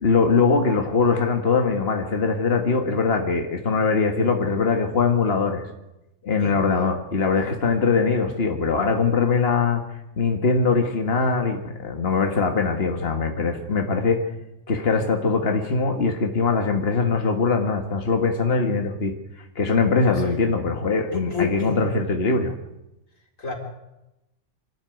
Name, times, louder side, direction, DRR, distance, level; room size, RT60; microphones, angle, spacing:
voice 1, 0.0-5.6 6.2-9.9 10.2-14.2 14.7-19.1 19.6-22.6, left 4 dB, 50° left, 4 dB, 1.9 m, -22 dB
voice 2, 20.1-20.4 21.1-21.8 23.4-23.5, left 5 dB, 90° left, 3 dB, 4.2 m, -30 dB
26.0 x 12.5 x 9.3 m, 0.95 s
omnidirectional pair, 1.3 m